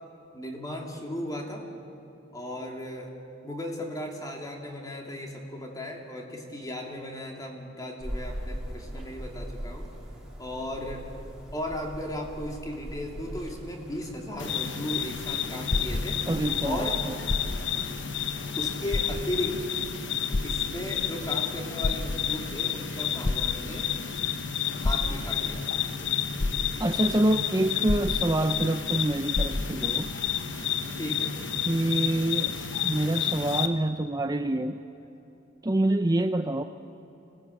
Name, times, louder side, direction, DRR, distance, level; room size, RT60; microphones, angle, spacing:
voice 1, 0.3-1.7 2.3-3.1 3.4-9.9 10.4-11.1 11.5-16.2 16.6-17.0 18.6-19.7 20.4-23.9 24.8-25.7 31.0-31.5, left 1 dB, 20° left, 1 dB, 2.8 m, -36 dB
sound 1, 8.0-19.8, equal, 5° right, 3.4 m, -41 dB
sound 2, 14.4-33.7, left 9 dB, 70° left, 1.3 m, -31 dB
sound 3, 15.3-16.6 17.2-17.9 18.3-18.4 18.9-19.6 20.3-21.1 21.6-22.5 23.2-24.0 24.8-25.5 26.0-26.1 26.4-27.1 27.9-28.7 28.9-29.0 29.3-30.0 30.7-30.8, left 2 dB, 50° left, 0.7 m, -30 dB
voice 2, 16.3-17.2 26.8-30.1 31.7-32.6 32.8-34.8 35.6-36.6, right 1 dB, 20° right, 8 dB, 0.5 m, -26 dB
25.0 x 18.5 x 8.7 m, 2.9 s
head